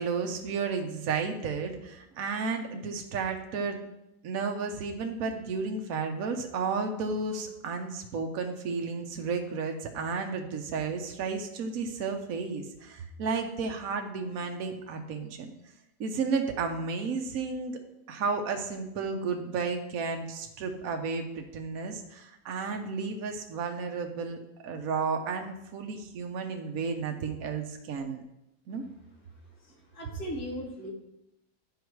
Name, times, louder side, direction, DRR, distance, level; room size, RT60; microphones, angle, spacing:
voice 1, 0.0-3.8 4.2-15.5 16.0-17.8 18.1-24.4 24.6-28.2 28.7-28.8, right 4 dB, 70° right, 4 dB, 1.3 m, -32 dB
voice 2, 29.4-30.9, equal, 80° left, -4 dB, 2.7 m, -39 dB
10.5 x 5.4 x 4.6 m, 0.85 s
omnidirectional pair, 1.5 m